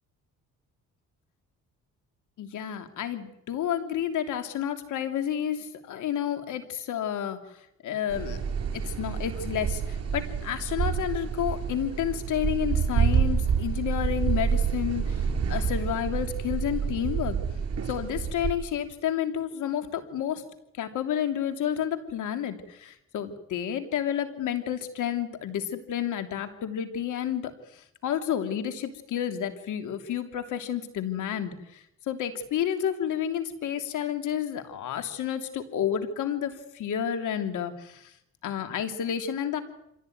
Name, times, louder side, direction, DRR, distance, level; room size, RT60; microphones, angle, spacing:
voice 1, 2.4-7.4 7.8-8.4 8.7-17.4 17.9-20.4 20.8-38.1 38.4-39.6, left 9 dB, 80° left, 7 dB, 3.1 m, -30 dB
sound 1, 8.1-18.5, right 7 dB, 55° right, 6.3 m, -28 dB
26.5 x 16.5 x 9.4 m, 0.79 s
cardioid pair, 90°, 30 cm